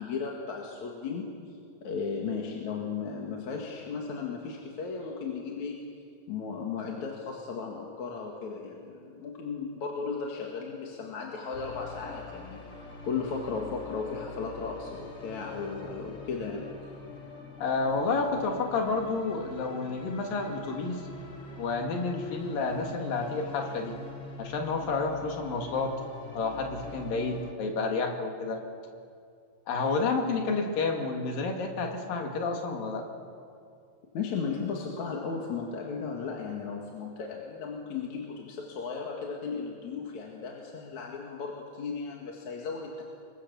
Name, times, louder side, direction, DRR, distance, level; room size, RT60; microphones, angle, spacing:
voice 1, 0.0-1.4 1.8-6.0 6.3-16.7 34.1-43.1, left 5 dB, 55° left, -1 dB, 3.1 m, -35 dB
sound 1, 11.5-27.5, left 3 dB, 30° left, 1.8 m, -45 dB
voice 2, 17.6-21.0 21.6-24.0 24.4-25.9 26.3-28.6 29.7-33.1, left 4 dB, 75° left, 3 dB, 4.0 m, -30 dB
26.5 x 23.5 x 7.0 m, 2.3 s
omnidirectional pair, 4.1 m